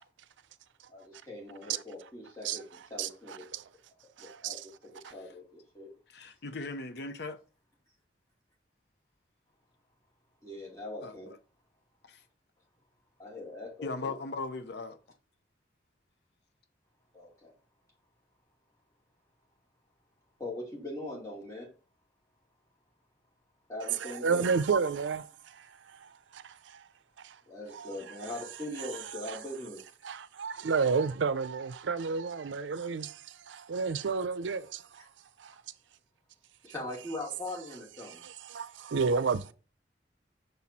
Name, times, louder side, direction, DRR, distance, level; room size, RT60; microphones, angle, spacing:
voice 1, 0.9-3.5 4.2-5.9 10.4-11.3 13.2-14.2 17.1-17.5 20.4-21.7 23.7-24.5 27.5-29.8 36.6-38.2, left 2 dB, 20° left, 2.5 m, -41 dB
voice 2, 3.0-3.6 4.2-4.6 5.0-5.1 24.0-26.9 27.2-27.4 27.7-28.0 28.8-28.9 29.3-29.4 30.0-35.0 35.4-35.5 38.0-39.5, right 5 dB, 85° right, 0.5 m, -32 dB
voice 3, 6.1-7.4 11.0-11.4 12.0-12.2 13.8-15.0, left 3 dB, 60° left, 0.6 m, -38 dB
6.7 x 4.2 x 4.2 m
head